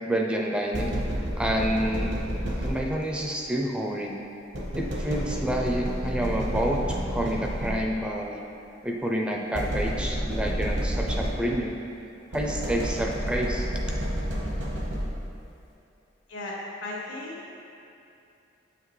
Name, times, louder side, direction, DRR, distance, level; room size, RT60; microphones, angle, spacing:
voice 1, 0.1-0.9 1.4-2.2 2.6-4.2 4.7-8.4 8.8-11.8 12.3-13.7, right 1 dB, 5° right, 0 dB, 0.4 m, -28 dB
sound 1, 0.7-3.2 4.5-8.1 9.5-11.7 12.3-15.4, equal, 70° right, 1.1 m, -30 dB
voice 2, 16.3-17.5, left 2 dB, 90° left, -3 dB, 1.4 m, -36 dB
7.7 x 5.8 x 3.1 m, 2.7 s
head